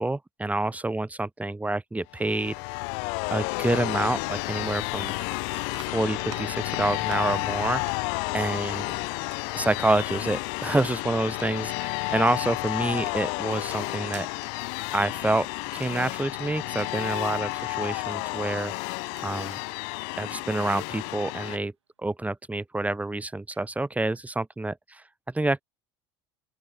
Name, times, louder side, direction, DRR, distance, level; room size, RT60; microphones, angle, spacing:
voice 1, 0.0-2.5 3.3-5.1 5.8-7.8 8.3-9.0 9.5-14.3 14.9-15.5 15.7-18.7 19.2-19.6 20.2-21.7 22.0-25.0 25.3-25.6, right 2 dB, 10° right, 1.7 m, -28 dB
sound 1, 2.1-21.6, left 40 dB or more, 65° left, 2.0 m, -31 dB
sound 2, 4.4-4.5 4.9-20.5 20.8-21.1 23.5-23.6, right 8 dB, 90° right, 5.4 m, -50 dB
open air
hypercardioid pair, 75°, 14 cm